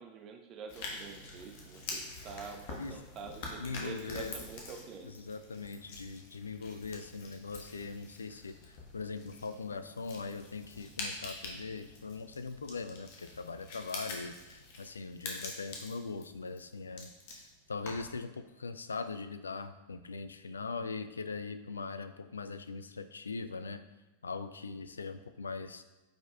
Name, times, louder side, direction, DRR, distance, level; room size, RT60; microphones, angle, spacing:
voice 1, 0.0-5.1, right 5 dB, 35° right, 4 dB, 0.9 m, -46 dB
sound 1, 0.7-18.2, left 3 dB, 50° left, 1.3 m, -46 dB
voice 2, 3.6-4.4 5.0-23.8 24.2-25.8, left 4 dB, 75° left, 11 dB, 0.4 m, -41 dB
9.0 x 5.2 x 2.3 m, 1.1 s
figure-of-eight pair, 90°, 0 cm